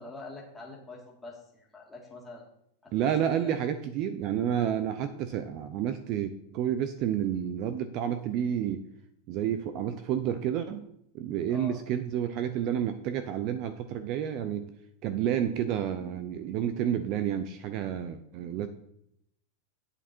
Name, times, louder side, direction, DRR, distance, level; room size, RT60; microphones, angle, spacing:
voice 1, 0.0-2.4 2.8-3.6 11.5-11.8, left 3 dB, 5° left, -2 dB, 2.2 m, -45 dB
voice 2, 2.9-8.8 9.3-10.9 11.1-14.7 15.0-18.7, right 9 dB, 35° right, 10 dB, 0.6 m, -30 dB
9.7 x 8.5 x 4.5 m, 0.75 s
supercardioid pair, 165°, 0 cm